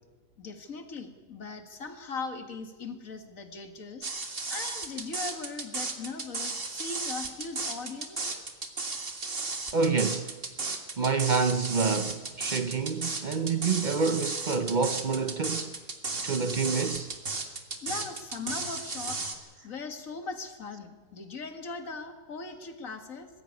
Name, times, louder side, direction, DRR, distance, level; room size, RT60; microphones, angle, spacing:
voice 1, 0.4-8.2 17.8-23.3, left 4 dB, 50° left, 2.2 m, -39 dB
sound 1, 4.0-19.3, right 3 dB, 35° right, 1.9 m, -34 dB
voice 2, 9.7-10.3 11.0-15.7 16.2-17.1, right 5 dB, 55° right, 0.5 m, -27 dB
20.5 x 15.5 x 9.4 m
omnidirectional pair, 1.8 m